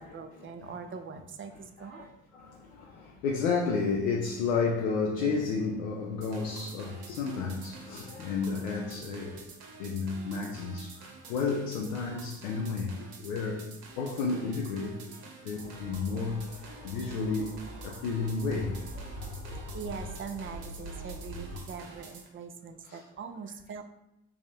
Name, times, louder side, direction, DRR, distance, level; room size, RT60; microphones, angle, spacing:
voice 1, 0.0-2.1 19.7-23.8, right 5 dB, 30° right, 7 dB, 0.4 m, -42 dB
voice 2, 1.9-9.5 9.8-13.7 14.0-15.0 15.4-17.5 17.8-19.6 21.5-21.6 22.8-23.0, left 4 dB, 85° left, -1 dB, 0.5 m, -32 dB
sound 1, 6.2-22.3, right 4 dB, 65° right, 0.9 m, -49 dB
sound 2, 15.5-21.5, right 1 dB, 60° left, 1.4 m, -45 dB
3.5 x 2.6 x 3.3 m, 0.84 s
hypercardioid pair, 50°, 40 cm